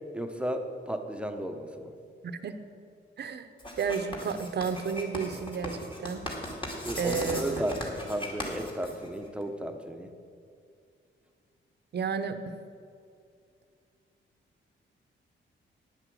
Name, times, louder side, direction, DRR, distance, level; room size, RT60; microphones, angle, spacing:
voice 1, 0.1-1.9 6.8-10.1, right 1 dB, 5° right, 5 dB, 0.9 m, -34 dB
voice 2, 3.2-3.5 3.8-6.2 7.0-7.6 11.9-12.5, right 6 dB, 55° right, 10 dB, 0.8 m, -32 dB
Writing, 3.6-9.4, left 1 dB, 25° left, 2.3 m, -38 dB
9.7 x 8.1 x 7.7 m, 2.4 s
cardioid pair, 110°, 20 cm